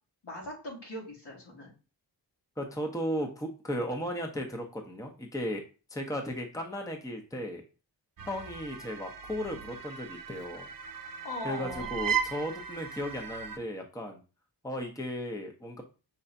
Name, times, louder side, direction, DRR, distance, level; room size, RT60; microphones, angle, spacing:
voice 1, 0.2-1.7 11.2-11.9, left 1 dB, 70° left, -3 dB, 2.1 m, -40 dB
voice 2, 2.6-5.6 5.9-7.6 8.3-10.7 11.4-14.2 14.6-15.8, equal, 10° left, 3 dB, 0.8 m, -35 dB
sound 1, 8.2-13.6, right 7 dB, 50° right, 0.6 m, -37 dB
5.7 x 3.1 x 2.6 m, 0.33 s
wide cardioid pair, 60°, 42 cm